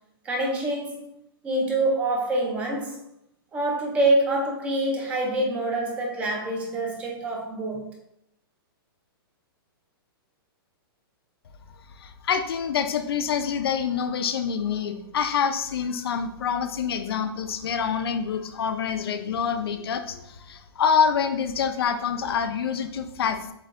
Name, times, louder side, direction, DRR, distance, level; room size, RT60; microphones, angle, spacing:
voice 1, 0.2-1.1 1.4-3.0 3.5-7.8, right 2 dB, 10° right, 0 dB, 0.4 m, -26 dB
voice 2, 12.0-23.5, left 7 dB, 75° left, 8 dB, 0.5 m, -26 dB
7.4 x 2.7 x 2.5 m, 0.80 s
hypercardioid pair, 170°, 13 cm